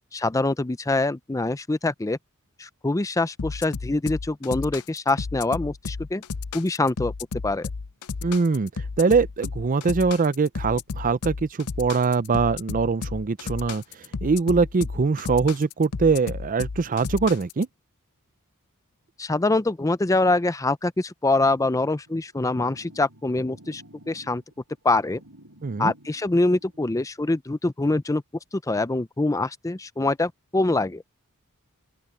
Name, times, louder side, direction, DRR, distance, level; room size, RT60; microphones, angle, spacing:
voice 1, 0.1-2.2 2.6-6.2 6.5-7.1 7.4-7.7 19.2-24.4 24.8-25.2 25.8-28.2 28.5-31.0, left 2 dB, 15° left, 0.5 m, -24 dB
sound 1, 3.4-17.6, left 4 dB, 85° left, 0.7 m, -33 dB
voice 2, 8.2-8.7 9.0-13.8 14.2-17.7 25.6-25.9, right 4 dB, 35° right, 0.5 m, -22 dB
sound 2, 22.1-27.0, right 1 dB, 85° right, 4.5 m, -52 dB
open air
head